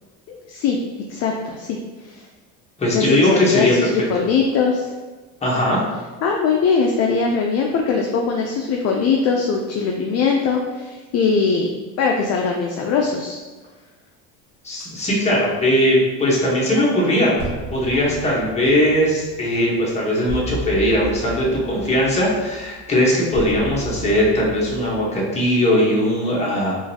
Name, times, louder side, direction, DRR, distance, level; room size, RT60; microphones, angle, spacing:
voice 1, 0.3-0.8 1.1-2.2 2.9-4.9 6.2-11.7 12.0-13.4, left 5 dB, 45° left, 1 dB, 0.4 m, -21 dB
voice 2, 2.8-3.9 5.4-5.8 14.6-17.3 17.7-26.7, equal, 20° left, -5 dB, 1.1 m, -19 dB
sound 1, 14.8-15.0 17.4-25.1, right 3 dB, 60° right, 1.4 m, -34 dB
3.7 x 2.6 x 2.8 m, 1.2 s
cardioid pair, 115°, 35 cm